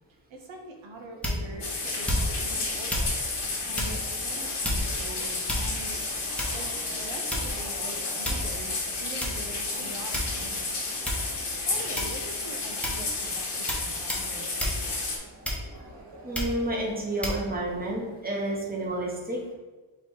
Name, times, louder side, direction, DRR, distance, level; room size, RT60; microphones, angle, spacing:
voice 1, 0.3-6.0 6.5-11.2 11.7-15.1, right 1 dB, 80° right, 2 dB, 0.8 m, -44 dB
sound 1, 1.2-1.6 2.0-2.5 2.9-3.1 3.7-4.0 4.6-5.0 5.5-5.9 6.4-6.7 7.3-7.7 8.2-8.6 9.2-9.4 10.1-10.6 11.0-11.3 11.9-12.3 12.8-13.1 13.7-13.8 14.1-14.3 14.6-14.8 15.4-15.8 16.3-16.6 17.2-17.4, left 1 dB, 5° left, 0.9 m, -30 dB
sound 2, 1.4-18.9, right 2 dB, 60° right, 1.2 m, -47 dB
sound 3, 1.6-15.2, left 3 dB, 60° left, 1.2 m, -32 dB
voice 2, 16.2-19.4, right 1 dB, 20° right, -2 dB, 1.0 m, -30 dB
4.1 x 2.9 x 4.3 m, 1.3 s
wide cardioid pair, 105°, 46 cm